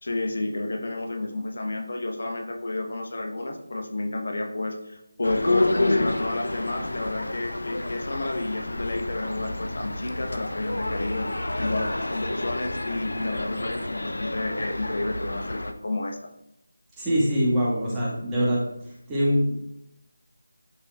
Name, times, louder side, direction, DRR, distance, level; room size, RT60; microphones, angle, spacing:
voice 1, 0.0-16.2, left 2 dB, 60° left, 3 dB, 1.0 m, -30 dB
sound 1, 5.2-15.7, left 2 dB, 80° left, 0.6 m, -29 dB
voice 2, 17.0-18.6 19.1-19.5, equal, 10° right, -7 dB, 1.7 m, -23 dB
11.5 x 4.3 x 2.4 m, 0.79 s
figure-of-eight pair, 165°, 0 cm